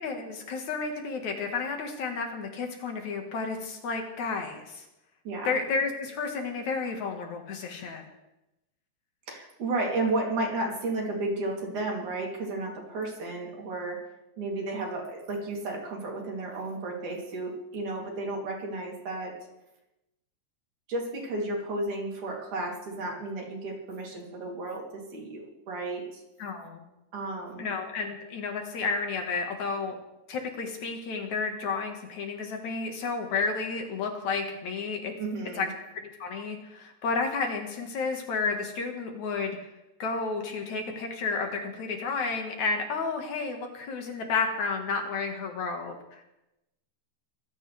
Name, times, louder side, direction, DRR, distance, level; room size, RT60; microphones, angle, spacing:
voice 1, 0.0-4.8 5.4-8.0 26.4-26.8 27.6-30.0 30.3-35.1 35.6-35.7 36.2-39.6 40.0-46.0, left 4 dB, 65° left, 3 dB, 3.1 m, -31 dB
voice 2, 9.3-14.0 14.4-19.4 20.9-26.2 27.1-27.7 35.2-35.7, right 2 dB, 70° right, -2 dB, 4.9 m, -33 dB
23.5 x 16.0 x 3.5 m, 0.94 s
omnidirectional pair, 3.6 m